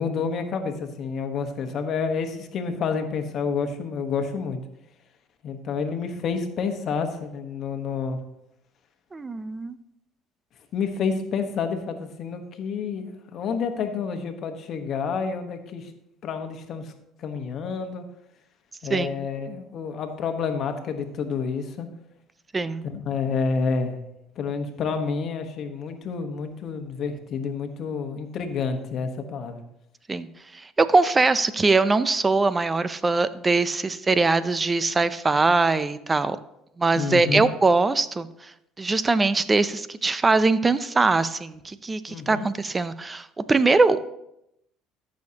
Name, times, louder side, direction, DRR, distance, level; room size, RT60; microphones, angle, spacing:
voice 1, 0.0-4.6 5.4-8.2 10.7-15.9 16.2-16.9 17.2-18.0 18.8-21.9 22.8-24.0 24.4-29.6 37.0-37.4 42.1-42.5, left 5 dB, 55° left, 6 dB, 1.2 m, -29 dB
voice 2, 9.1-9.8 18.9-19.1 22.5-22.8 30.1-30.3 30.5-36.4 36.8-38.3 38.8-44.0, right 3 dB, 20° right, 15 dB, 0.5 m, -22 dB
14.5 x 6.4 x 2.9 m, 0.82 s
supercardioid pair, 90°, 0 cm